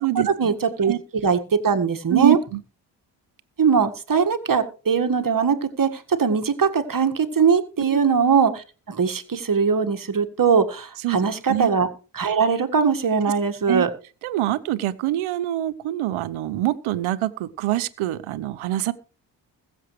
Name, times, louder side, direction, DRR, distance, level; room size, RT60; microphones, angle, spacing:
voice 1, 0.2-2.4 3.6-11.9 12.1-13.9, right 6 dB, 40° right, 8 dB, 1.8 m, -21 dB
voice 2, 2.1-2.6 7.9-8.1 11.0-11.7 13.7-13.8 14.2-18.9, right 15 dB, 70° right, 15 dB, 1.0 m, -25 dB
21.5 x 7.5 x 3.2 m, 0.35 s
hypercardioid pair, 40°, 50 cm